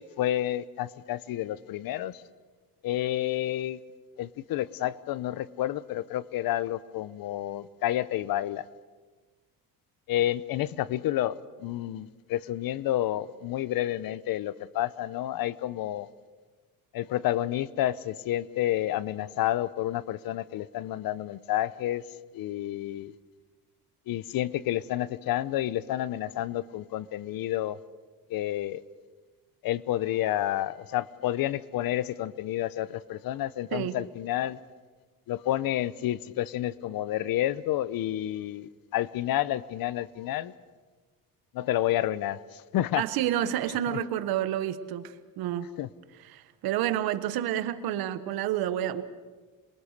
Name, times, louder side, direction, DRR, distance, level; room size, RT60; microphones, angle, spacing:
voice 1, 0.0-2.2 2.8-3.8 4.2-8.6 10.1-16.1 16.9-22.0 22.3-23.1 24.1-27.8 28.3-28.8 29.6-34.6 35.3-40.5 41.5-43.0 45.8-45.9, left 13 dB, 75° left, 18 dB, 0.9 m, -30 dB
voice 2, 43.0-45.7 46.2-49.0, right 11 dB, 90° right, 12 dB, 1.4 m, -29 dB
27.0 x 23.0 x 6.6 m, 1.4 s
cardioid pair, 105°, 35 cm